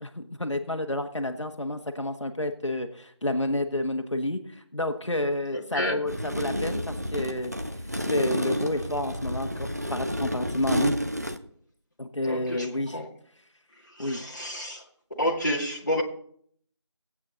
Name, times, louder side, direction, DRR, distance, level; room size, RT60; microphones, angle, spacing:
voice 1, 0.0-7.5 8.1-11.0 12.0-13.0 14.0-14.2, left 1 dB, 80° left, 6 dB, 1.4 m, -30 dB
voice 2, 5.5-6.0 12.2-13.1 13.9-14.8 15.2-16.0, left 1 dB, 40° left, -1 dB, 2.0 m, -29 dB
sound 1, 6.1-11.4, equal, 35° right, 0.7 m, -30 dB
17.0 x 8.6 x 3.9 m, 0.62 s
figure-of-eight pair, 180°, 15 cm